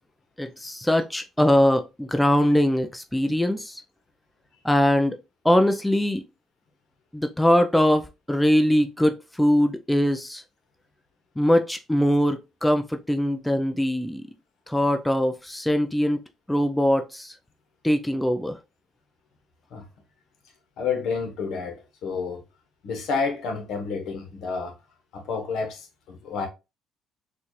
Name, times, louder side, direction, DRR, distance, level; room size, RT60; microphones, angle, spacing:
voice 1, 0.4-3.8 4.6-5.2 5.4-6.2 7.1-10.4 11.4-14.3 14.7-16.2 16.5-17.3 17.8-18.6, equal, 5° left, 0.4 m, -22 dB
voice 2, 20.8-22.4 22.8-24.7 25.1-26.5, left 5 dB, 70° left, 1.1 m, -30 dB
4.1 x 2.4 x 3.0 m
cardioid pair, 95°, 0 cm